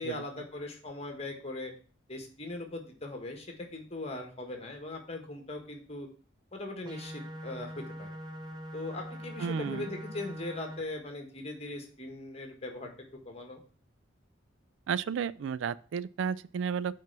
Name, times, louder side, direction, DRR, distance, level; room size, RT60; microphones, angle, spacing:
voice 1, 0.0-1.7 2.1-6.1 6.5-8.2 8.7-12.9 13.2-13.6, left 2 dB, 30° left, 1.5 m, -40 dB
sound 1, 6.8-10.8, equal, 20° right, 0.6 m, -42 dB
voice 2, 9.4-9.9 14.9-16.9, right 7 dB, 75° right, 0.3 m, -33 dB
6.0 x 4.5 x 5.9 m
head